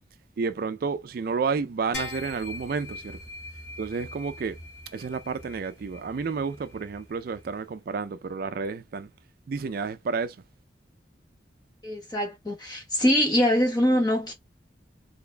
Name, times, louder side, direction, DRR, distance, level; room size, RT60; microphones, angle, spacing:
voice 1, 0.4-3.2 3.8-4.6 4.9-9.1 9.5-10.4, right 5 dB, 55° right, 0.4 m, -30 dB
sound 1, 1.9-7.6, left 2 dB, 90° left, 2.1 m, -42 dB
voice 2, 11.8-14.3, equal, 25° left, 1.1 m, -23 dB
3.8 x 3.3 x 2.2 m
head